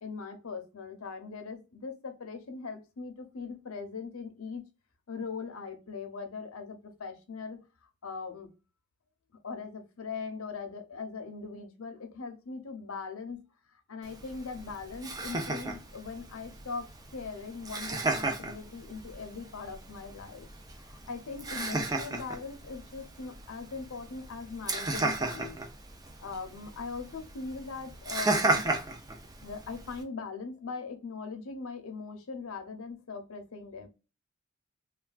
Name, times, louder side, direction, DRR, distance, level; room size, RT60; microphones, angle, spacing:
voice 1, 0.0-4.6 5.1-7.6 8.0-8.5 9.4-13.4 13.7-20.5 20.8-25.6 26.2-28.6 29.4-33.9, left 4 dB, 85° left, 6 dB, 0.7 m, -40 dB
Laughter, 14.0-30.0, right 2 dB, 20° right, 0.4 m, -35 dB
3.2 x 2.3 x 2.3 m, 0.30 s
head